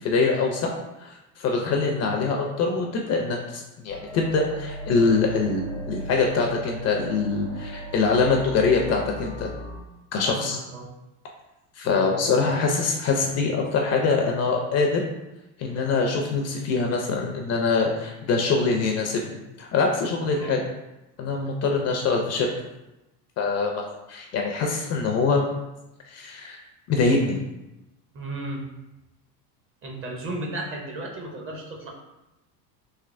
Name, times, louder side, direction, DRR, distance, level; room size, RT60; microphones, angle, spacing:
voice 1, 0.0-0.7 1.0-5.6 5.9-9.5 10.1-10.6 11.8-15.0 15.6-19.2 19.6-20.6 21.2-22.5 23.4-25.4 26.1-26.6 26.9-27.4, left 4 dB, 35° left, 1 dB, 0.4 m, -24 dB
sound 1, 3.9-9.8, right 2 dB, 65° right, 1.3 m, -37 dB
voice 2, 10.2-10.9 11.8-12.2 20.2-20.6 28.1-28.6 29.8-31.9, right 2 dB, 30° right, 0 dB, 0.6 m, -34 dB
3.2 x 2.8 x 2.5 m, 0.95 s
supercardioid pair, 115°, 45 cm